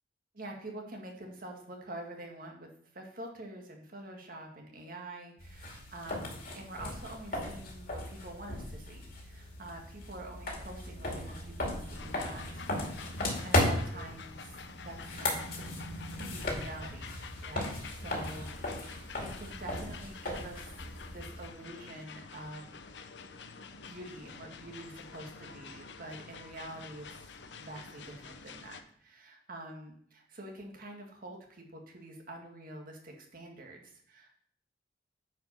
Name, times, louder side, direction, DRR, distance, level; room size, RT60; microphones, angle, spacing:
voice 1, 0.3-12.9 13.4-14.6 14.9-15.8 16.3-17.1 17.4-20.8 21.1-22.8 23.7-27.1 27.5-34.3, right 1 dB, 55° right, 2 dB, 1.8 m, -46 dB
sound 1, 5.4-21.5, left 1 dB, 55° left, 2.3 m, -36 dB
sound 2, 11.9-28.8, left 5 dB, 75° left, 0.7 m, -48 dB
9.1 x 5.0 x 5.5 m, 0.62 s
head